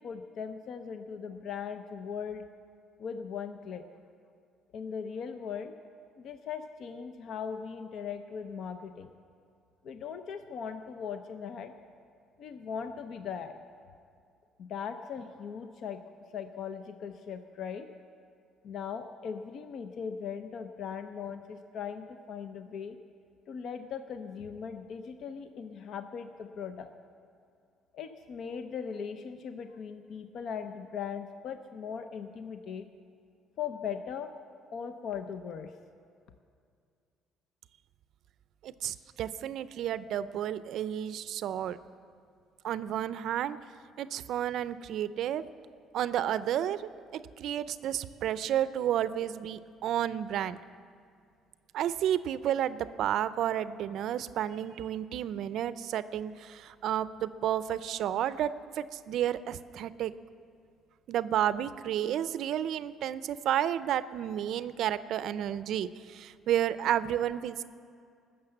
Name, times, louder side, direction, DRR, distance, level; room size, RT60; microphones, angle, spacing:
voice 1, 0.0-2.4 3.0-3.8 4.7-5.7 6.2-9.1 9.8-11.7 12.4-13.6 14.6-16.0 16.3-17.9 18.6-23.0 23.5-26.9 27.9-32.9 33.6-34.3 34.7-35.7, left 7 dB, 60° left, 8 dB, 0.6 m, -39 dB
voice 2, 38.6-41.8 42.6-43.6 44.0-45.4 45.9-50.6 51.7-60.1 61.1-67.6, right 11 dB, 65° right, 15 dB, 0.4 m, -31 dB
19.5 x 6.7 x 7.9 m, 2.3 s
cardioid pair, 125°, 0 cm